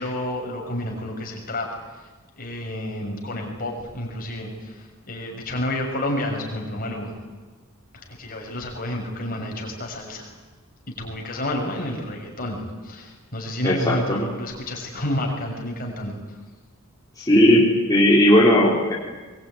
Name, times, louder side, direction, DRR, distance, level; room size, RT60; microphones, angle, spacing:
voice 1, 0.0-1.7 2.4-7.2 7.9-10.3 10.9-16.2, left 1 dB, 40° left, 1 dB, 6.4 m, -30 dB
voice 2, 13.6-14.2 17.2-18.9, left 1 dB, 15° left, -5 dB, 4.0 m, -17 dB
23.0 x 23.0 x 9.5 m, 1.3 s
head